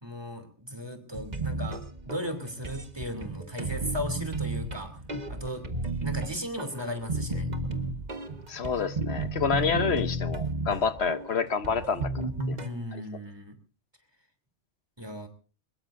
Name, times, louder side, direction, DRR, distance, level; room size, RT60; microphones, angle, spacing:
voice 1, 0.0-4.9 5.3-5.6 6.0-7.5 12.6-13.5 15.0-15.3, equal, 20° right, 3.0 m, -36 dB
sound 1, 1.1-12.7, right 2 dB, 35° right, 1.6 m, -33 dB
voice 2, 8.5-12.1 12.5-12.6 12.9-13.0, left 6 dB, 60° left, 1.2 m, -28 dB
23.0 x 20.5 x 2.6 m
omnidirectional pair, 1.2 m